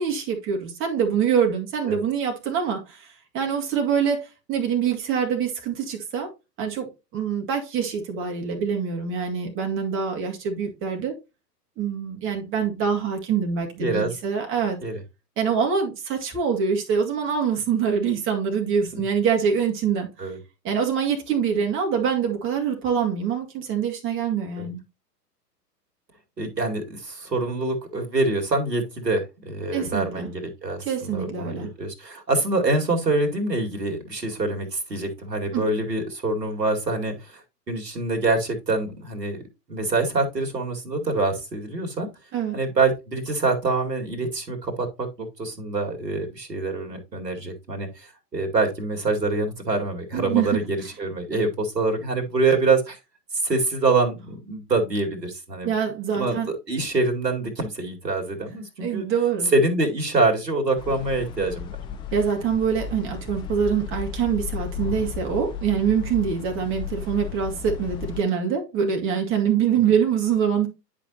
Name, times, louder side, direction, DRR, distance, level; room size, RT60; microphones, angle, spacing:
voice 1, 0.0-6.3 6.6-11.1 11.8-14.8 15.4-20.3 20.6-24.8 29.7-30.3 30.8-31.7 35.5-35.6 42.3-42.6 50.1-50.6 55.6-56.5 58.8-59.5 62.1-70.7, right 7 dB, 25° right, 2.4 m, -25 dB
voice 2, 13.8-14.1 14.8-15.0 18.9-19.0 20.2-20.4 24.6-24.7 26.4-37.4 37.7-39.4 39.7-42.1 42.5-53.0 53.4-55.7 56.2-59.0 59.5-61.8, right 3 dB, 80° right, 2.4 m, -25 dB
sound 1, 60.8-68.2, left 7 dB, 10° left, 0.5 m, -34 dB
10.5 x 5.1 x 2.8 m
figure-of-eight pair, 110°, 49 cm